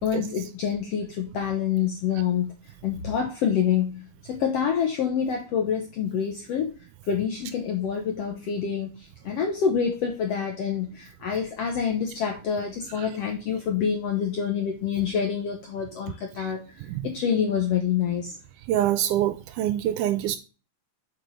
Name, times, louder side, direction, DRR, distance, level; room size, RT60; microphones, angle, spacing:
voice 1, 0.0-2.5 2.8-6.7 7.1-8.9 9.2-16.6 17.0-18.3, left 7 dB, 75° left, 1.5 m, -27 dB
voice 2, 16.8-17.1 18.7-20.4, right 12 dB, 80° right, 1.9 m, -25 dB
7.7 x 4.5 x 3.1 m
omnidirectional pair, 3.9 m